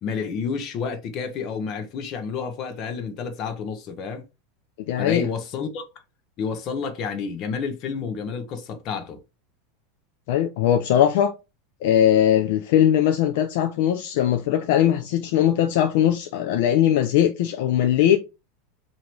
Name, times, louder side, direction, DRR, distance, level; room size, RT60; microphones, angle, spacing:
voice 1, 0.0-4.2 5.0-5.8 6.4-9.2, left 5 dB, 45° left, 0.9 m, -30 dB
voice 2, 4.9-5.3 10.3-11.3 11.8-18.2, left 10 dB, 70° left, 0.5 m, -20 dB
2.9 x 2.7 x 4.4 m
supercardioid pair, 130°, 0 cm